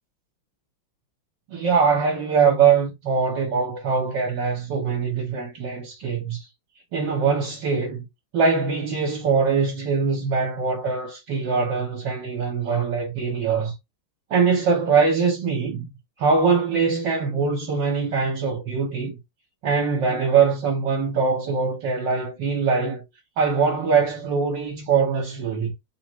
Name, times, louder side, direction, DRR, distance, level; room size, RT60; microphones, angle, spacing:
voice 1, 1.5-6.5 6.9-8.1 8.3-13.7 14.3-15.9 16.2-19.2 19.6-23.0 23.4-25.7, right 5 dB, 65° right, 1.5 m, -22 dB
3.8 x 2.4 x 3.0 m
omnidirectional pair, 2.3 m